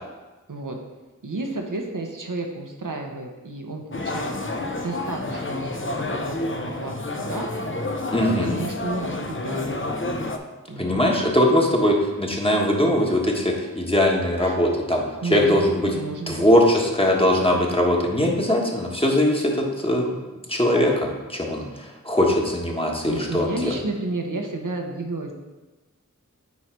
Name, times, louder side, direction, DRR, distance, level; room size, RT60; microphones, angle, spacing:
voice 1, 1.2-4.3 4.8-7.5 8.2-9.7 10.7-11.1 14.4-14.6 15.2-16.5 23.0-25.3, right 2 dB, 75° right, 2 dB, 0.9 m, -32 dB
sound 1, 3.9-10.4, left 2 dB, 40° left, 0.6 m, -29 dB
voice 2, 8.1-8.6 10.8-15.0 15.3-15.9 16.3-20.2 20.5-23.7, left 1 dB, 15° left, -1 dB, 1.2 m, -21 dB
9.3 x 3.2 x 4.5 m, 1.2 s
wide cardioid pair, 45°, 32 cm